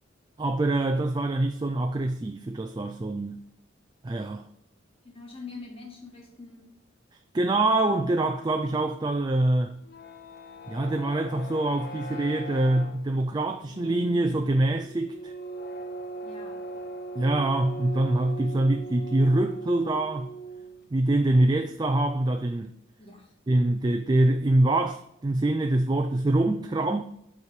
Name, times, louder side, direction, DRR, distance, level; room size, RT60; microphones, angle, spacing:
voice 1, 0.4-3.4 4.0-4.5 7.3-9.7 10.7-15.3 17.2-20.3 20.9-22.7 23.5-27.0, right 2 dB, 20° right, 0.4 m, -25 dB
voice 2, 5.0-6.8 16.2-16.6 23.0-23.3, left 4 dB, 30° left, 1.9 m, -44 dB
sound 1, 9.7-20.9, right 2 dB, 55° left, 0.8 m, -40 dB
8.3 x 4.7 x 5.2 m
head